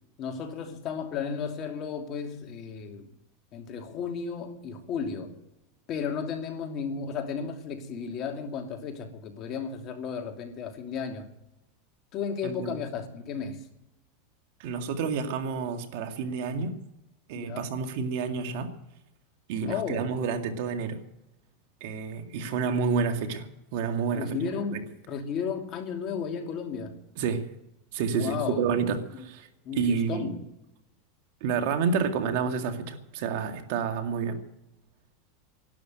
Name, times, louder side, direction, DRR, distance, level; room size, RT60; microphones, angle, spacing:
voice 1, 0.2-3.1 3.5-5.4 5.9-11.3 12.1-13.6 17.3-17.7 19.6-20.2 24.1-27.0 28.1-28.6 29.6-30.4, left 6 dB, 40° left, 2.8 m, -34 dB
voice 2, 12.4-12.8 14.6-16.7 17.3-18.7 19.5-21.0 21.8-24.4 24.7-24.8 27.2-27.5 27.9-29.5 29.7-30.4 31.4-34.4, right 5 dB, 65° right, 2.1 m, -29 dB
12.0 x 11.5 x 9.2 m
supercardioid pair, 120°, 0 cm